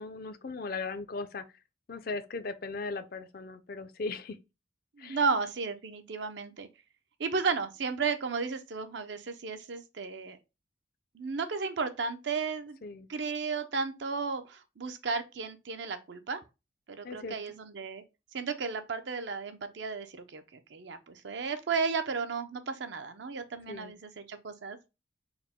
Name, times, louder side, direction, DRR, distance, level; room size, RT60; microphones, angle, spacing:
voice 1, 0.0-1.4 1.9-4.4 5.0-5.2 12.8-13.1 17.0-17.4 23.7-23.9, left 3 dB, 50° left, 0.4 m, -38 dB
voice 2, 5.0-6.7 7.2-10.4 11.1-12.8 13.1-16.4 16.9-18.0 18.3-24.8, right 5 dB, 65° right, 0.5 m, -34 dB
4.7 x 2.1 x 3.5 m
head